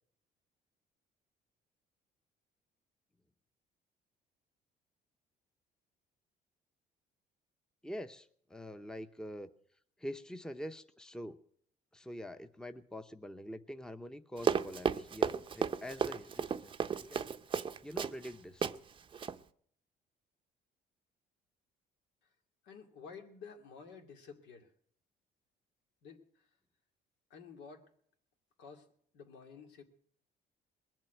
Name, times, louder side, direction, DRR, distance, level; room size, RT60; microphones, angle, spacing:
voice 1, 7.8-9.5 10.0-11.4 11.9-17.4 17.8-18.7, equal, 5° left, 10 dB, 0.7 m, -45 dB
Run, 14.4-18.3 18.6-18.8 19.1-19.4, right 6 dB, 30° right, 0.6 m, -33 dB
voice 2, 22.6-24.7 26.0-26.5 27.3-27.9 28.6-28.9 29.1-29.8, left 5 dB, 90° left, 3 dB, 2.4 m, -52 dB
21.0 x 7.5 x 9.2 m, 0.63 s
cardioid pair, 110°, 17 cm